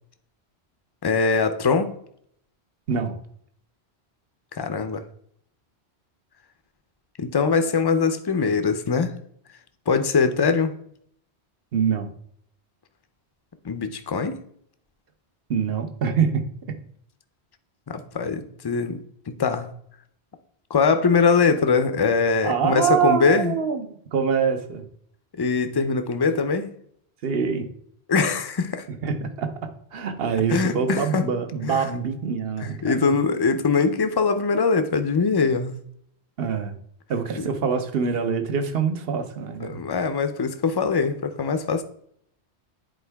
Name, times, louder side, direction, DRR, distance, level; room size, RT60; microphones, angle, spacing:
voice 1, 1.0-1.9 4.6-5.0 7.2-9.1 9.9-10.7 13.6-14.4 17.9-19.7 20.7-23.5 25.4-26.7 28.1-28.9 30.5-31.3 31.6-31.9 32.6-35.8 37.4-37.5 39.6-41.8, left 5 dB, 30° left, 0.5 m, -22 dB
voice 2, 11.7-12.1 15.5-16.4 22.4-24.9 27.2-27.7 29.0-33.1 36.4-36.8 37.1-39.8, right 6 dB, 65° right, 1.0 m, -25 dB
10.0 x 4.4 x 3.4 m
omnidirectional pair, 1.1 m